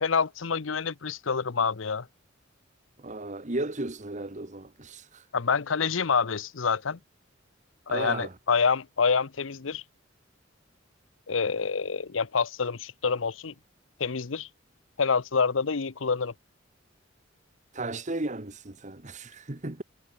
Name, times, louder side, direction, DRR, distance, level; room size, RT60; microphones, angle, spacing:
voice 1, 0.0-2.1 5.3-7.0 7.9-9.8 11.3-13.5 14.0-14.5 15.0-16.3, left 5 dB, 80° left, 0.8 m, -27 dB
voice 2, 3.0-5.2 7.9-8.3 17.7-19.8, right 2 dB, 40° right, 1.5 m, -35 dB
head